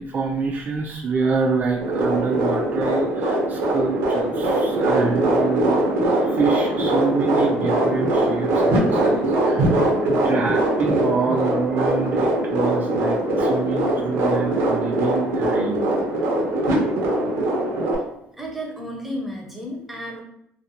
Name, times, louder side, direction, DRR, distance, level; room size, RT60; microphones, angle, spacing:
voice 1, 0.0-5.8 6.3-15.9 16.5-16.9, right 5 dB, 45° right, 0 dB, 0.3 m, -26 dB
sound 1, 1.8-18.0, right 1 dB, 85° right, 0.7 m, -21 dB
voice 2, 18.3-20.2, equal, 5° right, -1 dB, 0.7 m, -32 dB
2.4 x 2.2 x 2.7 m, 0.74 s
cardioid pair, 95°, 4 cm